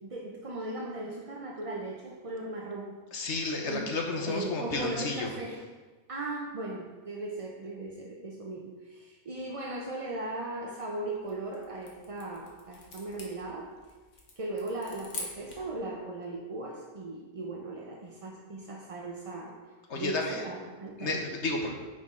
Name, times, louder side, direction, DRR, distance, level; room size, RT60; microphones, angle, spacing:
voice 1, 0.0-3.0 3.6-4.0 4.2-5.6 6.1-13.7 14.4-19.6 19.9-21.3, right 2 dB, 40° right, -1 dB, 0.5 m, -38 dB
voice 2, 3.1-5.3 19.9-20.4 21.0-21.7, left 3 dB, 60° left, 2 dB, 1.2 m, -32 dB
sound 1, 11.1-15.7, left 3 dB, 75° left, 1.7 m, -45 dB
9.6 x 5.1 x 3.7 m, 1.3 s
omnidirectional pair, 1.4 m